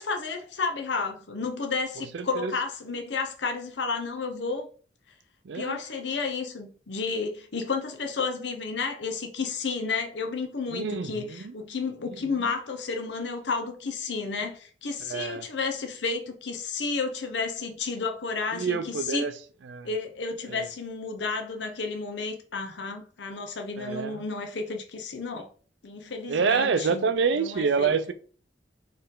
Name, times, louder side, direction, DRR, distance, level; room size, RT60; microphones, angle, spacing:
voice 1, 0.0-4.7 5.5-19.3 19.8-25.5 25.8-27.9, left 4 dB, 80° left, 0.7 m, -32 dB
voice 2, 2.1-2.5 5.5-5.8 10.7-11.5 15.1-15.4 18.5-19.3 19.7-19.9 20.5-20.6 23.8-24.2 26.3-28.1, right 5 dB, 85° right, 0.4 m, -27 dB
4.4 x 3.2 x 3.7 m
head